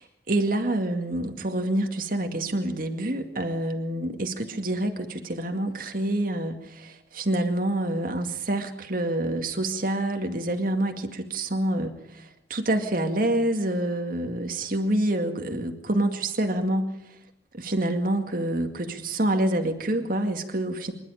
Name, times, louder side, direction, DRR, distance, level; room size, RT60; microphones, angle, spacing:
voice 1, 0.0-16.9 17.6-20.9, right 1 dB, 55° right, 5 dB, 2.2 m, -27 dB
26.0 x 12.0 x 10.0 m, 0.82 s
head